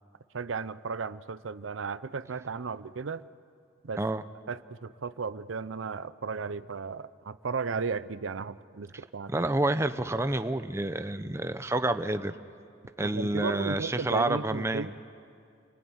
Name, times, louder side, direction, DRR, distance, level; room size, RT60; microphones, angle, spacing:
voice 1, 0.3-3.2 3.8-4.0 4.5-9.4 13.0-14.9, right 4 dB, 85° right, 15 dB, 0.6 m, -35 dB
voice 2, 9.3-12.3 13.0-14.9, right 2 dB, 15° right, 10 dB, 0.7 m, -29 dB
29.5 x 20.0 x 9.7 m, 2.3 s
head